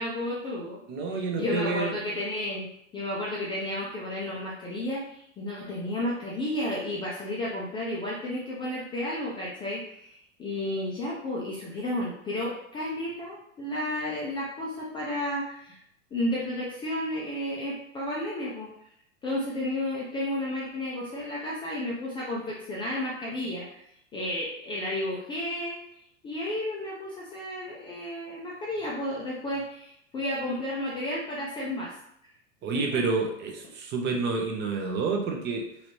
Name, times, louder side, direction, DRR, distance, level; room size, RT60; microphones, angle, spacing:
voice 1, 0.0-0.8 1.1-15.8 16.1-18.7 19.2-23.8 24.1-25.8 26.2-32.0 32.7-33.0, left 1 dB, 15° left, -5 dB, 0.4 m, -32 dB
voice 2, 0.9-2.0 32.6-35.6, right 4 dB, 30° right, 2 dB, 0.6 m, -29 dB
3.0 x 2.7 x 3.0 m, 0.73 s
hypercardioid pair, 100°, 39 cm